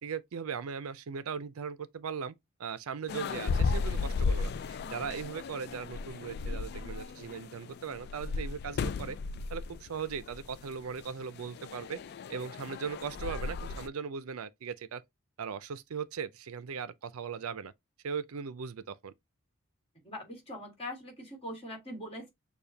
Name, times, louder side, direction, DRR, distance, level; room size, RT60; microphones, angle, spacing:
voice 1, 0.0-2.3 2.6-9.2 9.5-12.0 12.3-15.0 15.4-17.7 18.0-19.1, right 6 dB, 80° right, 0.5 m, -38 dB
sound 1, 3.1-13.9, left 4 dB, 50° left, 0.3 m, -35 dB
voice 2, 20.0-22.3, left 1 dB, 25° left, 1.8 m, -42 dB
6.9 x 2.3 x 2.7 m
head